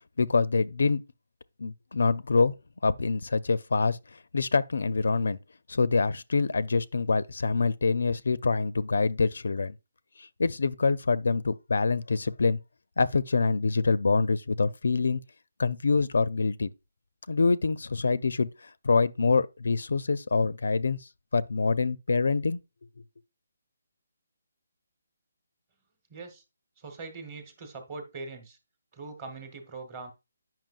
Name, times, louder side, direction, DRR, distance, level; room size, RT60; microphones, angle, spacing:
voice 1, 0.2-1.0 1.6-2.5 2.8-4.0 4.3-5.4 5.7-9.7 10.4-12.6 13.0-15.2 15.6-16.7 17.3-18.5 18.8-21.0 21.3-22.6, left 4 dB, 75° left, 0.4 m, -25 dB
voice 2, 26.1-26.4 26.8-28.6 28.9-30.1, right 3 dB, 20° right, 1.1 m, -42 dB
9.0 x 5.8 x 2.4 m
hypercardioid pair, 175°, 0 cm